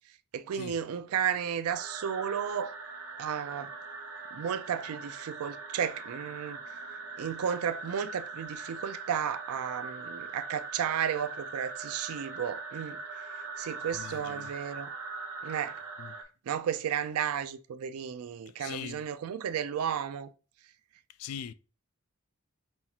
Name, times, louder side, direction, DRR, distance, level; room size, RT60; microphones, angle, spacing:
voice 1, 0.3-2.7 3.2-3.7 4.3-6.6 7.2-13.0 13.6-14.9 15.4-15.8 16.5-20.3, right 8 dB, 85° right, 0.4 m, -33 dB
sound 1, 1.7-16.2, right 4 dB, 70° right, 0.8 m, -41 dB
voice 2, 13.9-14.5 16.0-16.2 18.6-19.0 21.2-21.5, left 8 dB, 85° left, 0.3 m, -41 dB
5.4 x 2.4 x 2.8 m
head